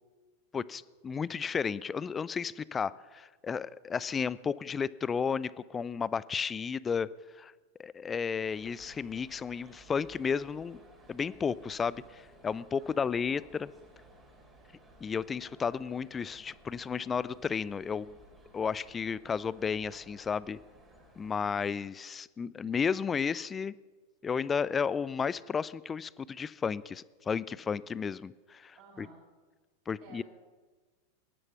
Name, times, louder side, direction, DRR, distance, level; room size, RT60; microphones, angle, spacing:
voice 1, 0.5-7.1 7.4-7.5 7.8-10.8 11.1-13.7 15.0-18.2 18.5-20.6 21.2-23.7 24.2-29.1 29.9-30.2, left 6 dB, 20° left, 20 dB, 0.4 m, -33 dB
sound 1, 8.4-21.6, right 1 dB, 10° right, 3.1 m, -58 dB
voice 2, 12.8-13.6 28.8-29.2 30.0-30.2, right 5 dB, 40° right, -3 dB, 5.3 m, -56 dB
13.0 x 11.0 x 5.8 m, 1.3 s
figure-of-eight pair, 90°, 0 cm